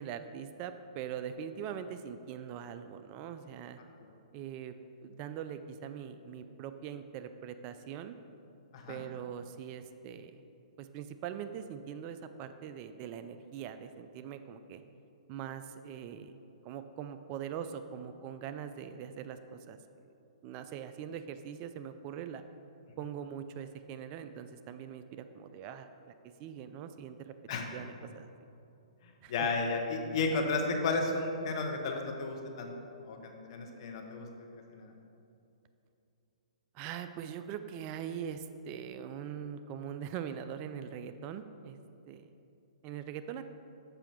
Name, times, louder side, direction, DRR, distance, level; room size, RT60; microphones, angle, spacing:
voice 1, 0.0-3.8 4.3-4.7 5.0-8.1 8.9-10.4 10.8-14.8 15.3-16.3 16.6-20.1 20.4-22.4 23.0-26.1 26.4-27.3 27.7-28.3 29.2-29.5 36.7-41.8 42.1-42.3 42.8-43.4, right 8 dB, 35° right, 10 dB, 0.4 m, -42 dB
voice 2, 29.3-32.7 33.0-34.9, left 3 dB, 50° left, 3 dB, 1.1 m, -33 dB
6.9 x 5.8 x 5.8 m, 2.7 s
hypercardioid pair, 130°, 4 cm